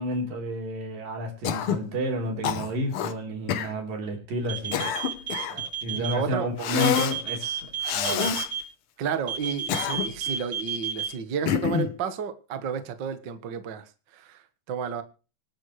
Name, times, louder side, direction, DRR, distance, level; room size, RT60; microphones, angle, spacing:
voice 1, 0.0-5.0 5.8-8.4, equal, 85° right, 5.4 m, -31 dB
Cough, 1.4-1.9 2.4-3.1 3.5-3.7 4.4-5.6 6.6-7.2 7.8-8.5 9.4-10.3 11.5-11.9, left 9 dB, 70° left, 1.3 m, -27 dB
sound 1, 4.5-6.1 6.8-8.6 9.3-11.1, right 8 dB, 30° right, 6.6 m, -31 dB
voice 2, 5.9-6.5 9.0-15.0, right 7 dB, 50° right, 1.3 m, -32 dB
26.0 x 9.0 x 3.2 m
omnidirectional pair, 3.8 m